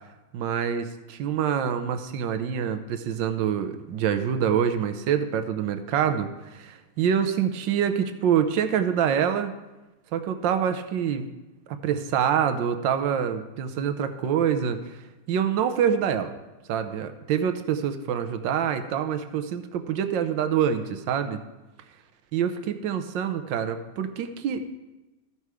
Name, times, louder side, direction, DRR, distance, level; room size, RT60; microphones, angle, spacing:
voice 1, 0.3-9.5 10.1-11.3 11.7-15.0 15.3-16.3 16.7-21.4 22.3-24.8, right 8 dB, 80° right, 8 dB, 1.4 m, -26 dB
14.0 x 5.6 x 4.7 m, 1.1 s
omnidirectional pair, 2.0 m